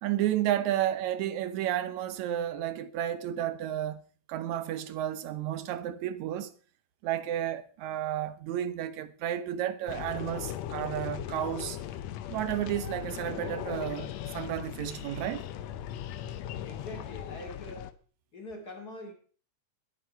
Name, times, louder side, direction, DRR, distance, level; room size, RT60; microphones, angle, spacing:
voice 1, 0.0-4.0 4.3-6.5 7.0-11.8 12.3-15.5, right 11 dB, 80° right, 2.1 m, -32 dB
sound 1, 9.9-17.9, left 11 dB, 70° left, 1.9 m, -38 dB
voice 2, 16.6-17.9 18.3-19.1, left 1 dB, 35° left, 2.8 m, -43 dB
20.5 x 8.9 x 4.5 m
omnidirectional pair, 3.3 m